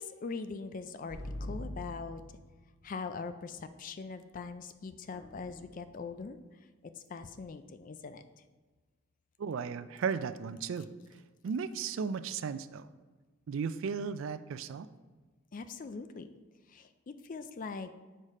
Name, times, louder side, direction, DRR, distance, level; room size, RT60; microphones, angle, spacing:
voice 1, 0.0-2.2 2.8-6.4 7.1-8.2 15.5-16.3 16.7-16.9 17.2-17.9, left 4 dB, 40° left, 10 dB, 0.4 m, -41 dB
sound 1, 1.1-2.9 5.1-6.1, left 1 dB, 55° left, 2.1 m, -43 dB
voice 2, 9.4-10.9 11.4-12.9 13.5-14.9, right 6 dB, 70° right, 13 dB, 0.3 m, -35 dB
6.5 x 5.1 x 4.2 m, 1.3 s
head